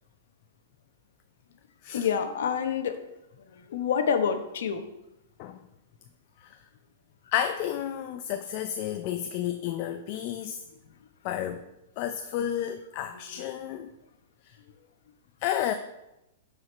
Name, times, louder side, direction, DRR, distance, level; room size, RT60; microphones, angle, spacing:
voice 1, 1.9-2.9 3.5-4.8 13.1-13.4, left 7 dB, 75° left, 8 dB, 1.0 m, -28 dB
voice 2, 7.3-10.6 11.2-11.6 12.0-13.9 14.5-14.6 15.4-15.7, left 10 dB, 45° left, 7 dB, 0.5 m, -31 dB
11.5 x 5.0 x 4.3 m, 0.93 s
hypercardioid pair, 140°, 0 cm